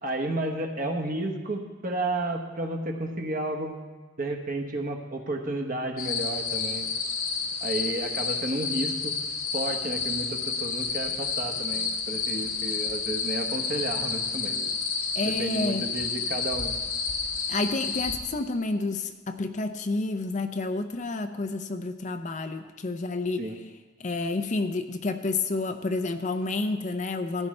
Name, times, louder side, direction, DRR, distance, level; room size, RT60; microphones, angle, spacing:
voice 1, 0.0-3.8 4.2-6.9 7.6-9.1 9.5-14.7 15.2-16.7 23.4-23.6, right 1 dB, 40° right, 3 dB, 1.1 m, -32 dB
sound 1, 6.0-18.2, left 5 dB, 85° left, 1.2 m, -30 dB
voice 2, 15.2-15.9 17.5-23.5 24.0-27.5, left 3 dB, 35° left, 8 dB, 0.5 m, -29 dB
15.0 x 11.0 x 3.2 m, 1.4 s
head